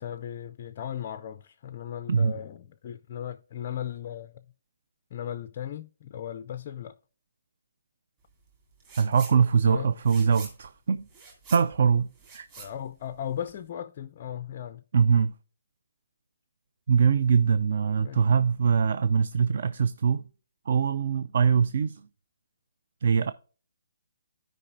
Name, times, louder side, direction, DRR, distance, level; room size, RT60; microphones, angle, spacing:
voice 1, 0.0-4.5 5.1-7.0 9.7-9.9 12.6-14.8 18.0-18.3, left 10 dB, 25° left, 0.4 m, -37 dB
sound 1, 8.8-9.4 9.7-13.6, right 4 dB, 20° right, 2.3 m, -46 dB
voice 2, 9.0-11.0 11.5-12.1 12.3-12.5 14.9-15.3 16.9-20.2 20.7-22.0 23.0-23.3, right 6 dB, 45° right, 0.4 m, -23 dB
13.5 x 5.1 x 2.6 m
hypercardioid pair, 175°, 0 cm